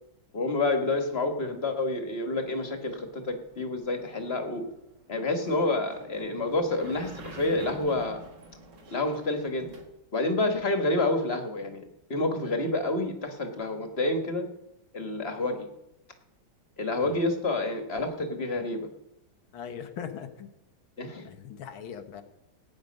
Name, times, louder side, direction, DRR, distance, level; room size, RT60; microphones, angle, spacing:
voice 1, 0.3-4.6 5.1-8.2 8.9-9.7 10.1-11.8 12.1-14.4 14.9-15.7 16.8-18.9 21.0-21.3, left 2 dB, 35° left, 5 dB, 1.8 m, -28 dB
sound 1, 2.4-9.9, right 2 dB, 60° right, 2.4 m, -48 dB
voice 2, 19.5-20.5 21.2-22.2, left 8 dB, 85° left, 7 dB, 2.0 m, -40 dB
18.5 x 9.6 x 5.3 m, 0.86 s
omnidirectional pair, 2.1 m